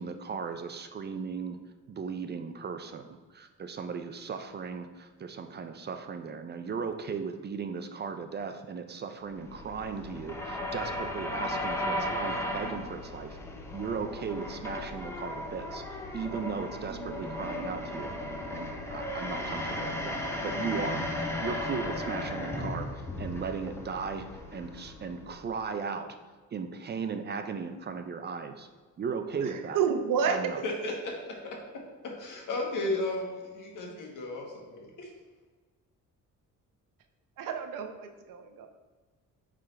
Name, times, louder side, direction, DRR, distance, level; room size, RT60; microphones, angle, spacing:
voice 1, 0.0-1.6 1.9-13.4 13.7-18.1 18.5-21.1 21.4-24.3 24.5-26.1 26.5-28.7 29.0-29.8 30.2-30.6, right 5 dB, 35° right, 7 dB, 0.4 m, -37 dB
sound 1, 9.3-25.6, left 1 dB, 10° left, 0.7 m, -36 dB
voice 2, 29.5-30.4 37.4-38.7, right 6 dB, 90° right, 6 dB, 0.8 m, -30 dB
voice 3, 30.6-31.6 32.0-35.1, left 2 dB, 75° left, 0 dB, 1.5 m, -34 dB
8.6 x 3.8 x 3.3 m, 1.4 s
cardioid pair, 155°, 32 cm